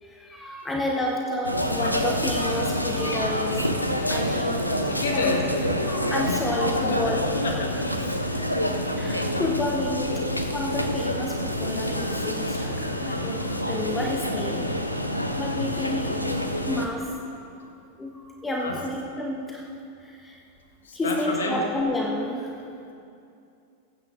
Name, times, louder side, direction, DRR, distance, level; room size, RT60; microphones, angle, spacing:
voice 1, 0.0-3.6 4.1-4.9 5.1-5.4 5.8-7.2 9.0-14.7 15.3-16.2 16.6-17.1 17.6-17.7 18.0-19.7 20.0-20.4 20.9-22.6, left 1 dB, 10° left, 0 dB, 1.1 m, -30 dB
sound 1, 1.4-16.9, equal, 85° left, 0.7 m, -27 dB
voice 2, 4.8-5.5 6.9-7.2 7.4-8.2 9.2-9.4 18.6-18.8 20.8-21.6, left 3 dB, 65° left, 1 dB, 1.7 m, -30 dB
21.5 x 9.3 x 2.6 m, 2.6 s
figure-of-eight pair, 90°, 0 cm